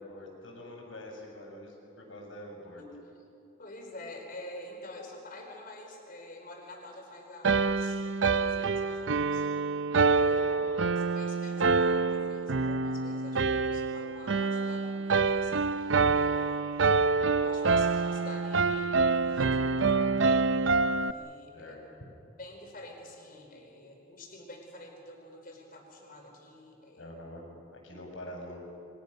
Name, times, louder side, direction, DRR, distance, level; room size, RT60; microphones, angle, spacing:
voice 1, 0.0-2.8 10.1-10.7 21.5-22.1 27.0-27.4 27.7-28.6, left 1 dB, 85° left, 0 dB, 6.6 m, -45 dB
voice 2, 3.6-8.0 8.3-9.5 10.1-10.4 10.7-16.9 17.4-20.4 20.9-21.8 22.4-27.2, left 1 dB, 45° left, 2 dB, 4.8 m, -47 dB
sound 1, 7.4-21.1, right 4 dB, 70° right, 0.6 m, -26 dB
28.0 x 23.5 x 6.6 m, 2.7 s
head